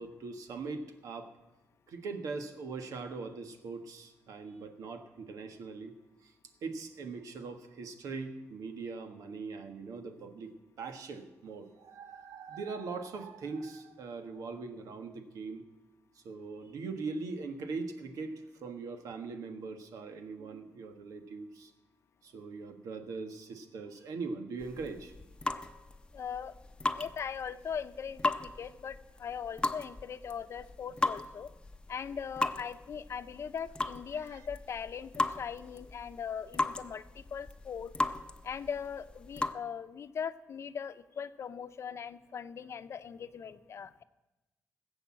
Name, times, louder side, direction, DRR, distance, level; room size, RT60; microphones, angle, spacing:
voice 1, 0.0-1.3 1.9-6.0 6.2-6.3 6.6-15.6 16.1-21.7 22.2-25.1, right 4 dB, 90° right, 6 dB, 1.6 m, -41 dB
sound 1, 24.6-39.5, left 2 dB, 15° left, 0.8 m, -37 dB
voice 2, 26.1-26.5 26.9-31.5 31.9-37.9 38.4-44.0, left 7 dB, 55° left, 11 dB, 0.7 m, -40 dB
18.5 x 8.1 x 7.5 m, 1.0 s
cardioid pair, 120°, 6 cm